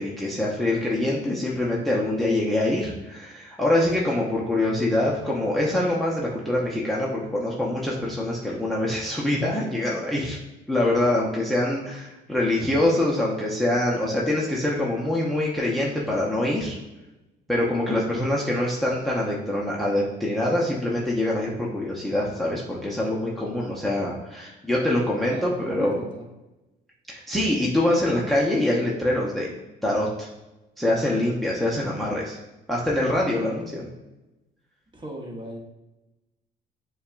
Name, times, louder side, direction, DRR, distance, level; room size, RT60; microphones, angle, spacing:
voice 1, 0.0-10.4 10.7-16.8 17.5-26.0 27.1-29.5 29.8-30.3 30.8-32.4 32.7-33.9, left 1 dB, ahead, -4 dB, 0.8 m, -24 dB
voice 2, 23.4-24.0 25.3-26.3 34.9-35.6, right 1 dB, 25° right, -1 dB, 1.1 m, -38 dB
6.6 x 2.3 x 2.5 m, 1.0 s
supercardioid pair, 80°, 20 cm